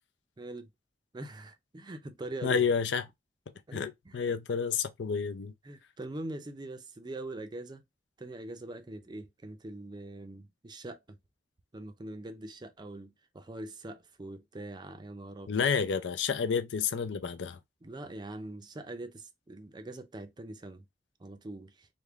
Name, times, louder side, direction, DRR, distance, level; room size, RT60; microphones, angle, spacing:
voice 1, 0.4-0.7 1.1-2.6 3.7-4.2 5.6-7.8 8.2-11.2 11.7-15.7 17.8-20.9 21.2-21.9, right 2 dB, 25° right, 0.5 m, -43 dB
voice 2, 2.4-3.0 3.7-5.5 15.5-17.6, left 6 dB, 80° left, 0.5 m, -30 dB
3.4 x 2.1 x 3.5 m
head